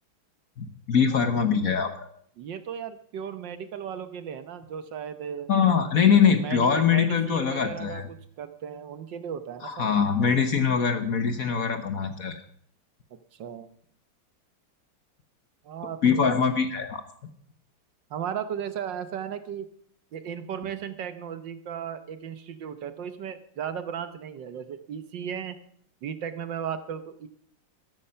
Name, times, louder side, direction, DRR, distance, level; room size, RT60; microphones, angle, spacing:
voice 1, 0.6-2.1 5.5-8.0 9.6-12.4 16.0-17.0, left 6 dB, 50° left, 8 dB, 1.3 m, -23 dB
voice 2, 2.4-5.5 6.2-10.3 13.3-13.7 15.6-16.4 18.1-19.7 20.1-25.6 26.0-27.3, right 8 dB, 65° right, 11 dB, 1.5 m, -36 dB
13.5 x 13.0 x 5.6 m, 0.62 s
omnidirectional pair, 2.2 m